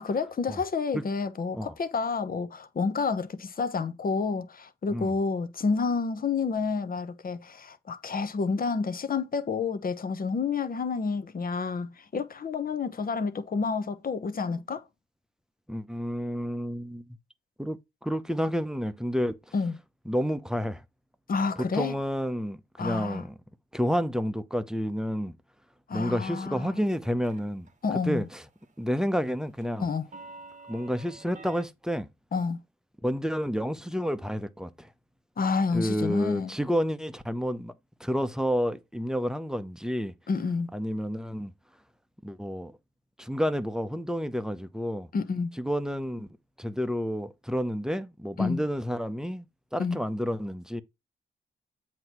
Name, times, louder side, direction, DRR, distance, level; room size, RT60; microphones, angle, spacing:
voice 1, 0.0-14.8 19.5-19.8 21.3-22.0 22.8-23.3 25.9-26.8 27.8-28.3 29.8-30.1 32.3-32.6 35.4-36.5 40.3-40.7 45.1-45.6 48.4-48.6 49.8-50.0, left 4 dB, 45° left, 0.9 m, -29 dB
voice 2, 15.7-17.0 17.6-19.4 20.1-20.8 21.7-23.3 23.7-25.3 25.9-27.7 28.1-28.4 28.8-29.9 30.7-32.1 33.0-34.9 35.7-37.7 38.0-40.1 40.7-41.5 42.2-42.8 43.2-45.1 45.6-46.3 46.6-49.4 49.7-50.8, equal, 5° right, 0.8 m, -30 dB
sound 1, 26.8-27.7 28.0-28.3 28.6-31.6, right 3 dB, 35° right, 0.9 m, -48 dB
7.7 x 2.9 x 5.9 m
supercardioid pair, 50°, 21 cm